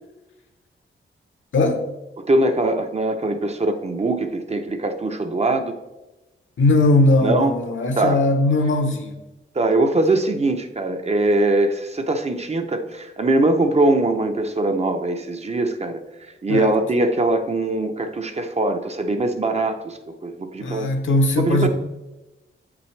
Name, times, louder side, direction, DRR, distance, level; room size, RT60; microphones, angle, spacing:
voice 1, 1.5-1.8 6.6-9.1 16.5-16.8 20.6-21.7, left 2 dB, 70° left, 5 dB, 0.9 m, -19 dB
voice 2, 2.2-5.7 7.2-7.5 8.0-8.2 9.5-16.0 16.4-20.9 21.4-21.7, right 2 dB, 30° right, 6 dB, 0.6 m, -22 dB
8.0 x 6.0 x 3.2 m, 1.0 s
wide cardioid pair, 120°, 21 cm